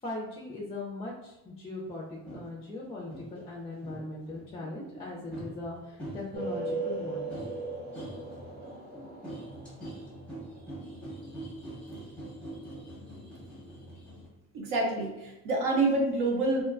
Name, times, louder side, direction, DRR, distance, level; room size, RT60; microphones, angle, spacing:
voice 1, 0.0-7.3, left 2 dB, 20° left, -3 dB, 0.4 m, -39 dB
sound 1, 2.3-2.5 3.1-3.3 3.8-14.3, right 1 dB, 5° left, 0.7 m, -44 dB
sound 2, 6.3-9.9, right 3 dB, 30° right, 0.6 m, -37 dB
voice 2, 14.5-16.6, right 2 dB, 75° right, 0 dB, 0.8 m, -27 dB
2.5 x 2.1 x 2.4 m, 0.93 s
cardioid pair, 120°, 32 cm